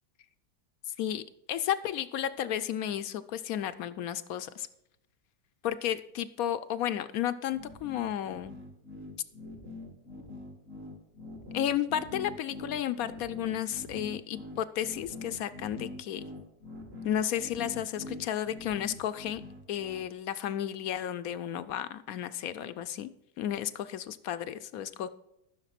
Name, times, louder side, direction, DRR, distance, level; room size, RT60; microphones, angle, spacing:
voice 1, 1.5-4.7 5.6-8.5 11.5-16.2 17.0-19.4 19.7-23.1 23.4-25.1, left 10 dB, 70° left, 14 dB, 0.9 m, -33 dB
sound 1, 7.5-20.1, left 2 dB, 40° right, 1.6 m, -44 dB
14.0 x 6.6 x 5.8 m, 0.82 s
omnidirectional pair, 1.8 m